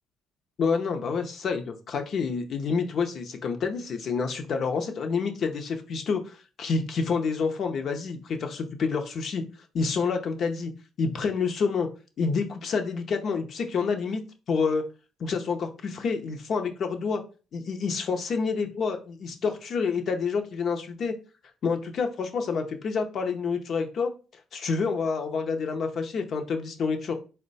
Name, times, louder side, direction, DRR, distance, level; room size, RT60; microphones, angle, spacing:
voice 1, 0.6-9.4 9.7-10.7 11.0-11.9 12.2-14.2 14.5-14.8 15.2-17.2 17.5-21.1 21.6-24.1 24.5-27.1, left 5 dB, 55° left, 5 dB, 0.7 m, -28 dB
4.3 x 2.2 x 4.0 m, 0.33 s
cardioid pair, 90°, 0 cm